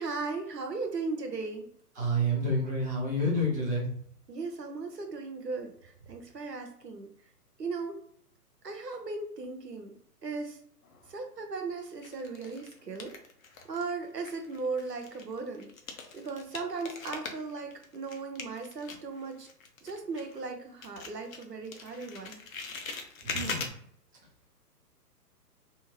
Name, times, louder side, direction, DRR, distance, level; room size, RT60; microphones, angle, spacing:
voice 1, 0.0-1.7 4.3-7.1 7.6-8.0 8.6-9.9 10.2-10.6 11.1-13.1 13.7-15.7 16.1-19.5 19.8-22.4, right 4 dB, 85° right, 5 dB, 0.8 m, -37 dB
voice 2, 1.9-3.9 23.2-23.9, equal, 15° right, -6 dB, 0.5 m, -29 dB
sound 1, 10.8-11.4 12.0-13.9 14.2-20.5 20.8-23.7, left 4 dB, 60° left, 0.7 m, -42 dB
2.8 x 2.7 x 2.9 m, 0.63 s
figure-of-eight pair, 125°, 47 cm